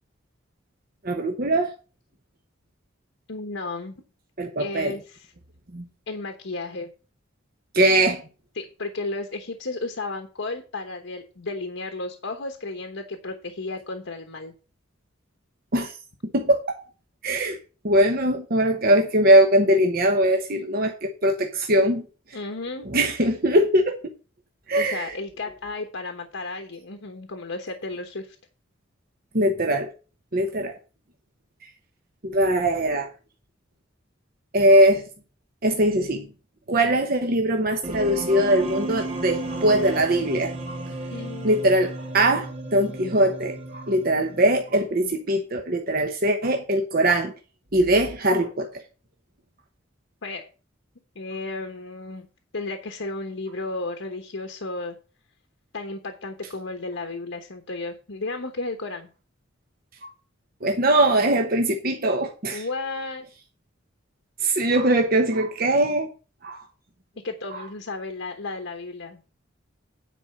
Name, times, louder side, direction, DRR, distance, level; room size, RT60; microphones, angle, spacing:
voice 1, 1.0-1.7 4.4-5.0 5.7-5.9 7.7-8.2 15.7-16.0 16.3-16.8 17.2-17.6 17.8-22.4 22.8-24.0 24.7-25.1 29.3-29.9 30.3-30.8 32.2-33.1 34.5-35.0 35.6-36.3 36.7-40.9 41.4-47.3 47.7-48.8 60.0-60.1 60.6-62.6 64.4-66.1 66.4-66.7 67.5-67.6, right 1 dB, 50° right, 1.0 m, -21 dB
voice 2, 3.3-3.9 4.6-5.3 6.1-6.9 8.6-14.5 22.3-22.9 24.8-28.4 41.1-41.5 50.2-50.5 51.1-52.3 52.5-55.0 55.7-59.1 62.5-63.2 67.2-69.2, left 3 dB, 80° left, 1.2 m, -33 dB
sound 1, 37.8-44.9, right 2 dB, 35° right, 1.6 m, -34 dB
9.9 x 4.7 x 7.0 m
head